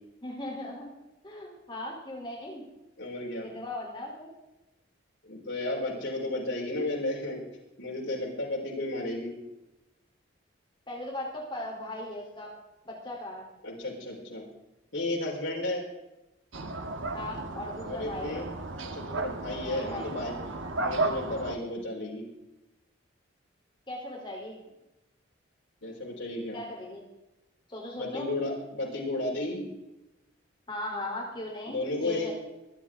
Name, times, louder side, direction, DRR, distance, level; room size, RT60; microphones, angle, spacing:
voice 1, 0.2-0.9 1.2-2.6 3.4-4.3 10.9-12.5 12.9-13.5 17.1-18.4 19.6-20.1 23.9-24.6 26.5-27.0 27.7-28.3 30.7-32.3, left 1 dB, 25° left, -2 dB, 3.6 m, -38 dB
voice 2, 3.0-3.5 5.2-7.4 7.8-9.4 13.6-14.4 14.9-15.8 17.8-18.5 18.9-20.3 20.8-22.3 25.8-26.6 28.0-29.7 31.7-32.3, left 2 dB, 75° left, -5 dB, 4.8 m, -33 dB
sound 1, 16.5-21.6, right 2 dB, 85° right, 1.4 m, -34 dB
24.5 x 10.0 x 3.8 m, 0.98 s
head